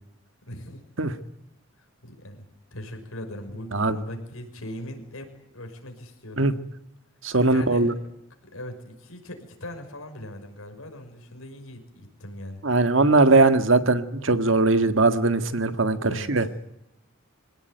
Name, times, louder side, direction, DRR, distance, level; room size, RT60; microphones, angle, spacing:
voice 1, 0.4-0.8 2.0-2.4 2.7-5.3 5.5-6.5 7.5-7.9 8.4-12.6 16.0-16.5, left 1 dB, 90° left, 5 dB, 5.8 m, -39 dB
voice 2, 7.2-7.9 12.6-16.4, right 3 dB, 65° right, 10 dB, 1.7 m, -20 dB
25.5 x 17.5 x 9.3 m, 0.87 s
head